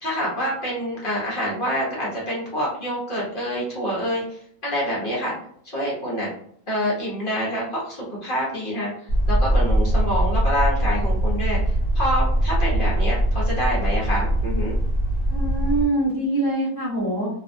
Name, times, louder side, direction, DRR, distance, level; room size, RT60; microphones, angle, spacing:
voice 1, 0.0-5.3 5.6-6.3 6.7-8.9 9.3-14.8, equal, 45° left, -5 dB, 0.9 m, -26 dB
sound 1, 9.1-15.8, right 1 dB, 60° left, 1.3 m, -21 dB
voice 2, 15.3-17.3, right 2 dB, 25° right, -8 dB, 0.4 m, -24 dB
2.6 x 2.3 x 2.5 m, 0.64 s
omnidirectional pair, 1.5 m